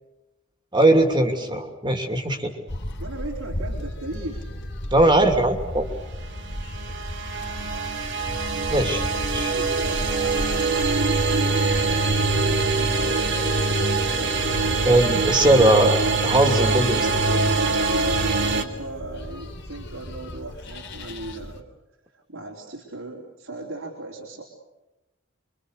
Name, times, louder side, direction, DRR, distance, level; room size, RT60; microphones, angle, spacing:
voice 1, 0.7-2.5 4.9-5.9 8.7-9.0 9.3-9.5 14.8-17.2, right 1 dB, 20° right, 5 dB, 2.8 m, -20 dB
sound 1, 2.7-21.6, left 1 dB, 60° left, 3.3 m, -35 dB
voice 2, 3.0-4.5 9.4-11.7 12.3-14.6 16.7-17.4 18.2-21.7 22.1-24.4, right 2 dB, 80° right, -1 dB, 4.0 m, -37 dB
sound 2, 6.4-18.6, right 3 dB, 60° right, 2.6 m, -23 dB
28.5 x 24.5 x 6.7 m, 1.0 s
head